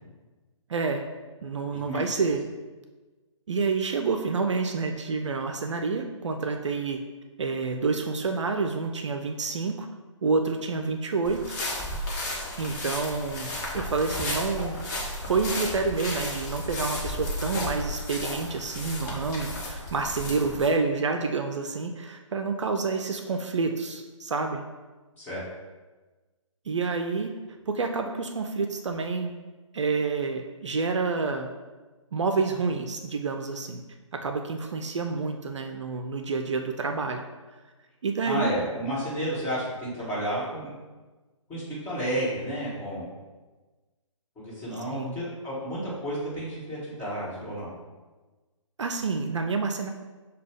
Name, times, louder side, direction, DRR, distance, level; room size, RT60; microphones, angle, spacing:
voice 1, 0.7-1.1 1.4-2.4 3.5-7.0 7.4-9.9 10.2-11.6 12.6-14.8 15.3-24.6 26.7-27.3 27.7-29.3 29.7-31.5 32.1-33.8 34.1-37.2 38.0-38.5 44.9-45.2 48.8-49.9, right 4 dB, 65° right, 5 dB, 0.4 m, -28 dB
voice 2, 1.8-2.3 20.2-20.3 25.1-25.4 38.2-40.7 41.5-43.1 44.3-47.7, equal, 10° left, -10 dB, 1.5 m, -31 dB
sound 1, 11.2-20.7, left 1 dB, 35° left, 1.1 m, -33 dB
6.5 x 2.3 x 3.5 m, 1.3 s
figure-of-eight pair, 140°, 17 cm